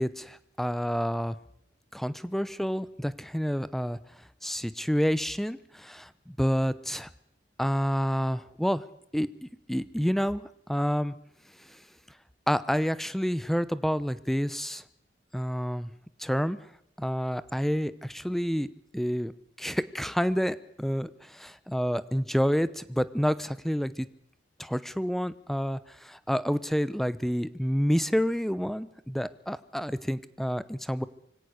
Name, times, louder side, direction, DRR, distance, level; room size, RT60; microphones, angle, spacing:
voice 1, 0.0-1.4 1.9-4.0 4.4-7.1 7.6-8.8 9.1-11.1 11.7-11.8 12.5-14.8 15.3-15.9 16.2-16.6 17.0-18.7 18.9-19.3 19.6-24.1 24.6-31.1, equal, ahead, 15 dB, 0.8 m, -29 dB
24.5 x 17.0 x 6.5 m, 0.73 s
head